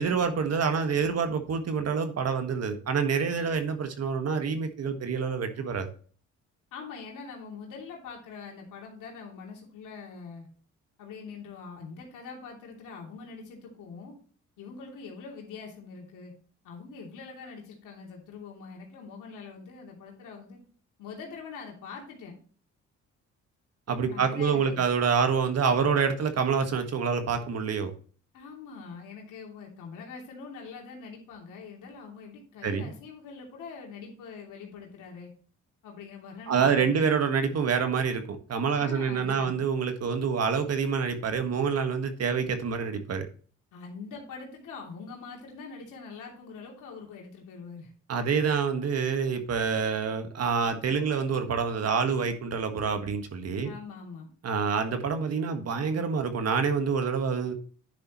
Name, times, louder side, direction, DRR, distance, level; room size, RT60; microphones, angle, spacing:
voice 1, 0.0-5.9 23.9-27.9 32.6-32.9 36.5-43.3 48.1-53.7 54.4-57.5, right 6 dB, 55° right, 7 dB, 1.6 m, -27 dB
voice 2, 6.7-10.5 11.0-14.2 14.6-16.3 16.6-20.6 21.0-22.4 24.1-24.8 28.3-35.3 35.8-37.1 38.7-39.6 43.7-47.9 53.6-54.3, left 5 dB, 85° left, -1 dB, 2.9 m, -43 dB
10.0 x 6.8 x 3.1 m, 0.42 s
cardioid pair, 90°, 30 cm